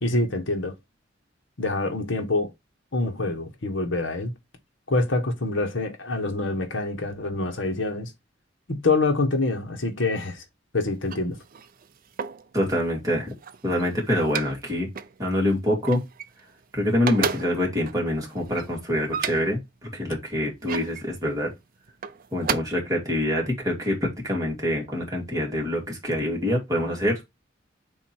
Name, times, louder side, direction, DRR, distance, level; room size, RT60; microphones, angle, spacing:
voice 1, 0.0-0.7 1.6-2.5 2.9-4.3 4.9-8.1 8.7-10.4 10.7-11.4, left 2 dB, 70° left, 1.4 m, -26 dB
sound 1, 10.9-12.5 13.1-14.6 14.9-15.2 15.5-16.6 16.9-19.7 20.3-21.1 21.9-22.5, right 7 dB, 50° right, 0.5 m, -33 dB
voice 2, 12.5-13.3 13.6-14.9 15.2-16.0 16.7-19.6 19.9-21.5 22.3-27.2, left 1 dB, 20° right, 2.4 m, -25 dB
7.5 x 2.9 x 4.4 m
head